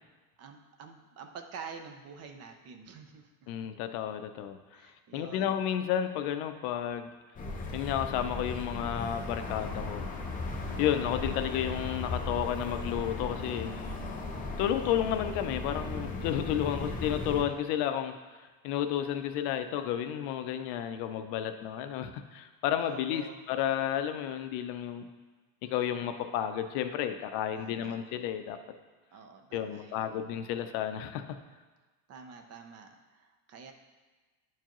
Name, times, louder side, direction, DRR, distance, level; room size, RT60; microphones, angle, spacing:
voice 1, 0.4-3.5 4.7-5.6 7.3-7.5 10.7-11.1 22.8-23.4 27.5-28.0 29.1-30.2 32.1-33.7, right 5 dB, 35° right, 5 dB, 0.5 m, -48 dB
voice 2, 3.5-4.6 5.1-7.1 7.7-10.1 10.8-13.7 14.6-18.1 18.6-25.1 25.6-28.6 29.5-31.2, left 10 dB, 60° left, 9 dB, 0.6 m, -32 dB
sound 1, 7.4-17.4, left 3 dB, 20° left, 0.6 m, -37 dB
10.5 x 4.6 x 3.0 m, 1.3 s
cardioid pair, 150°, 46 cm